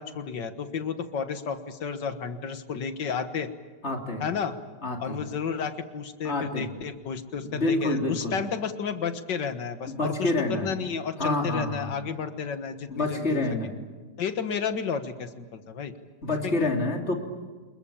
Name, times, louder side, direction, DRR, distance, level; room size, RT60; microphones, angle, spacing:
voice 1, 0.0-3.5 4.2-4.5 5.0-13.4 14.2-15.9 16.4-16.5, left 6 dB, 85° left, 9 dB, 2.1 m, -32 dB
voice 2, 3.8-4.2 4.8-5.2 6.2-6.7 7.4-8.3 9.9-10.7 11.2-11.9 12.9-13.7 16.2-17.1, left 2 dB, 40° left, 2 dB, 3.3 m, -27 dB
27.0 x 21.5 x 8.7 m, 1.4 s
omnidirectional pair, 1.9 m